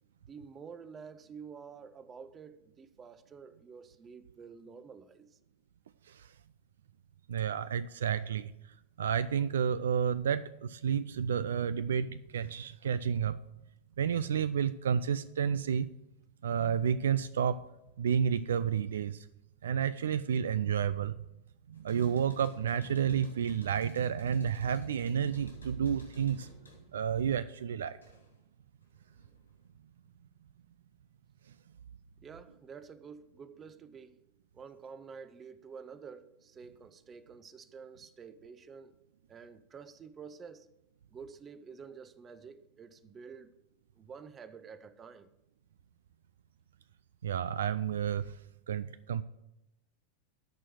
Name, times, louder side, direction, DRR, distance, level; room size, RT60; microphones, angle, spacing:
voice 1, 0.3-5.4 32.2-34.2 34.5-39.0 39.3-40.7 41.1-43.5 44.0-45.3, right 6 dB, 20° right, 0.6 m, -49 dB
voice 2, 7.3-8.5 9.0-13.4 14.0-15.9 16.4-17.6 18.0-19.3 19.6-21.1 21.7-26.5 26.9-28.0 47.2-48.4 48.7-49.2, right 8 dB, 65° right, 0.3 m, -30 dB
sound 1, 21.7-28.5 28.8-29.7, left 2 dB, 75° left, 2.9 m, -58 dB
12.5 x 4.6 x 7.8 m
figure-of-eight pair, 90°, 0 cm